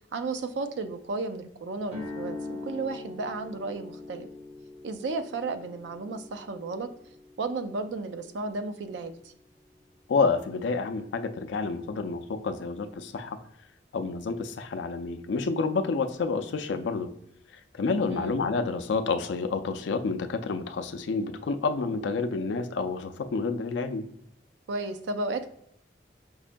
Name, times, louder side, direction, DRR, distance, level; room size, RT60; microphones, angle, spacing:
voice 1, 0.1-4.3 4.8-6.9 7.4-9.3 18.1-18.4 24.7-25.5, right 3 dB, 85° right, 9 dB, 0.4 m, -33 dB
sound 1, 1.9-9.9, left 3 dB, 35° right, 0.7 m, -43 dB
voice 2, 10.1-13.4 13.9-17.1 17.8-24.1, left 4 dB, 85° left, 8 dB, 0.4 m, -29 dB
5.4 x 2.2 x 2.5 m, 0.76 s
head